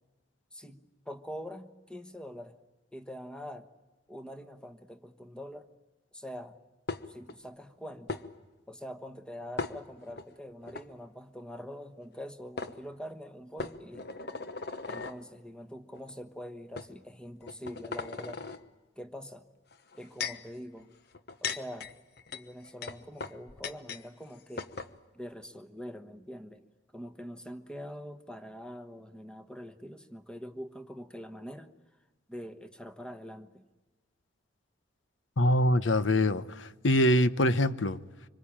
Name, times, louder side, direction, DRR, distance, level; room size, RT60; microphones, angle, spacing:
voice 1, 0.5-2.6 2.9-3.7 4.1-5.7 6.1-6.5 7.1-8.3 8.7-14.1 14.9-18.4 19.0-19.5 20.0-20.9 21.4-21.9 22.3-24.7 25.1-26.6 26.9-31.7 32.3-33.7, equal, 5° left, 9 dB, 1.3 m, -44 dB
sound 1, 6.9-7.4 8.1-8.2 9.6-10.2 10.7-10.8 12.1-12.2 12.6-12.7 13.6-15.2 16.0-16.1 16.8-16.9 17.4-18.6 19.7-20.5 21.1-24.0 24.3-24.4 24.6-24.9, left 4 dB, 55° left, 1.1 m, -38 dB
voice 2, 35.4-38.0, left 1 dB, 90° left, 13 dB, 1.0 m, -24 dB
25.5 x 25.5 x 8.8 m, 1.2 s
head